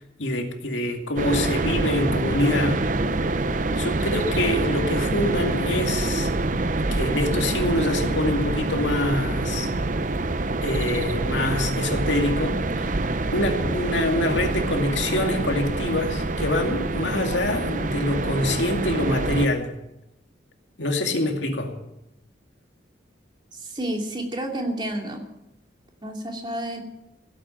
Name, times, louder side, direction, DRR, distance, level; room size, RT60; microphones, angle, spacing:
voice 1, 0.0-2.8 3.7-6.3 6.9-9.7 10.6-13.0 13.3-19.8 20.8-21.7, left 1 dB, 80° left, 4 dB, 2.3 m, -25 dB
sound 1, 1.2-19.5, right 2 dB, 45° right, 0.7 m, -26 dB
voice 2, 23.5-25.2 26.0-26.8, right 1 dB, 25° right, 1 dB, 2.7 m, -30 dB
17.0 x 8.6 x 9.2 m, 0.91 s
head